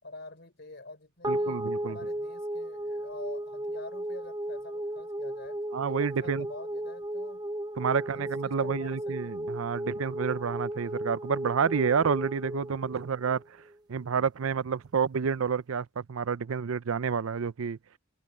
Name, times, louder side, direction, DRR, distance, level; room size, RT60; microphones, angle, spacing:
voice 1, 0.0-5.6 5.9-7.5 7.9-9.3 12.9-13.1, left 2 dB, 55° left, 4.2 m, -47 dB
sound 1, 1.2-13.8, right 1 dB, 20° right, 0.8 m, -35 dB
voice 2, 1.3-2.0 5.7-6.5 7.8-13.4 13.9-17.8, right 6 dB, 80° right, 0.5 m, -29 dB
open air
head